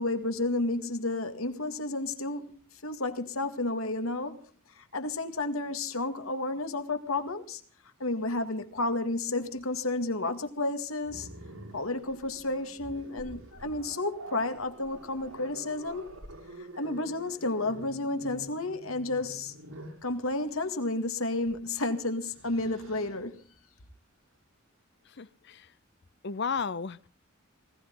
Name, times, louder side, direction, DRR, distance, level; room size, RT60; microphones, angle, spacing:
voice 1, 0.0-4.4 4.8-7.6 8.0-11.3 11.7-16.1 16.8-19.5 20.0-23.4, left 2 dB, 80° left, 2.1 m, -31 dB
Growling, 11.0-20.1 21.4-21.6 22.0-23.2, right 1 dB, 85° right, 6.9 m, -47 dB
voice 2, 25.2-25.7 26.2-27.1, left 5 dB, 55° left, 0.7 m, -33 dB
19.5 x 18.0 x 3.9 m
head